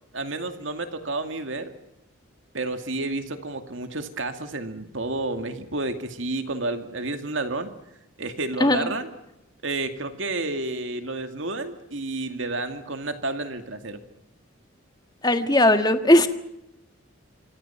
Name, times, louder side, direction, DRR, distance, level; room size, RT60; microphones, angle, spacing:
voice 1, 0.1-1.7 2.5-7.7 8.2-9.1 9.6-14.0, right 2 dB, 65° right, 7 dB, 2.3 m, -30 dB
voice 2, 8.6-8.9 15.2-16.3, left 1 dB, 20° left, 8 dB, 1.6 m, -18 dB
27.5 x 25.5 x 5.9 m, 0.87 s
head